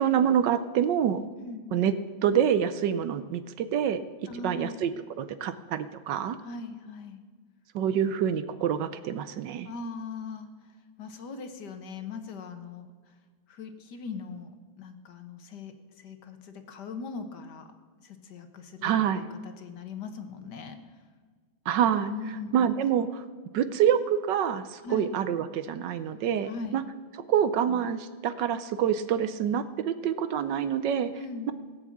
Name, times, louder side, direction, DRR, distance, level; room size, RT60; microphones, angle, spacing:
voice 1, 0.0-1.3 1.7-1.9 2.2-4.0 4.4-4.9 5.2-6.4 7.7-9.7 18.8-19.2 21.7-22.1 22.5-23.2 23.5-26.8 27.3-31.1, right 9 dB, 70° right, 13 dB, 1.2 m, -26 dB
voice 2, 1.4-1.8 4.3-4.8 6.4-7.2 9.6-13.2 13.5-17.7 18.0-21.0 22.1-22.6 24.8-25.1 26.4-26.8 31.1-31.5, left 4 dB, 60° left, 8 dB, 1.6 m, -40 dB
17.0 x 7.3 x 8.4 m, 1.5 s
omnidirectional pair, 2.2 m